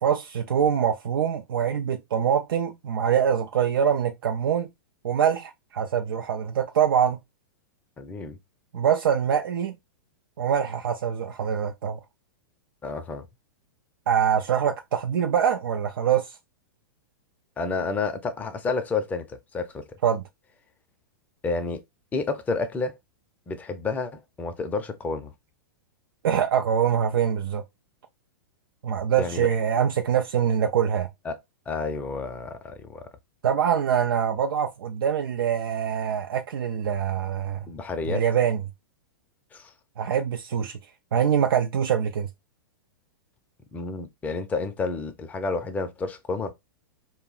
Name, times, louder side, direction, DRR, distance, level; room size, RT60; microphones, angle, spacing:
voice 1, 0.0-4.7 5.0-7.2 8.7-9.8 10.4-12.0 14.1-16.4 20.0-20.2 26.2-27.6 28.8-31.1 33.4-37.6 38.1-38.6 40.0-40.8 41.1-42.3, right 8 dB, 85° right, 0.4 m, -24 dB
voice 2, 8.0-8.4 12.8-13.3 17.6-19.9 21.4-21.8 22.1-23.0 23.5-25.3 29.2-29.5 31.2-31.4 31.7-33.0 37.7-38.2 39.5-39.7 43.7-46.5, left 4 dB, 15° left, 0.4 m, -30 dB
2.2 x 2.0 x 3.7 m
hypercardioid pair, 130°, 11 cm